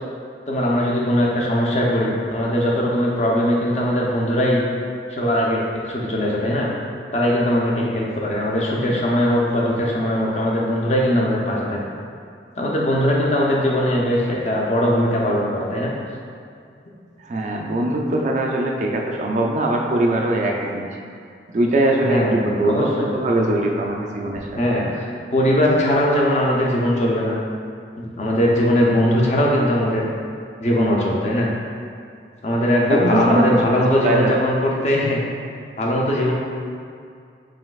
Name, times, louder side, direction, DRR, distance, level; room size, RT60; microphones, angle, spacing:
voice 1, 0.5-4.7 5.1-6.7 7.1-11.8 12.6-15.9 22.1-23.1 24.6-27.4 28.2-30.0 30.6-31.5 32.4-35.2 35.8-36.3, equal, 40° left, -3 dB, 0.6 m, -20 dB
voice 2, 17.3-20.9 21.5-24.4 24.8-24.9 32.7-34.3, right 1 dB, 40° right, 0 dB, 0.3 m, -21 dB
5.1 x 3.3 x 2.3 m, 2.3 s
head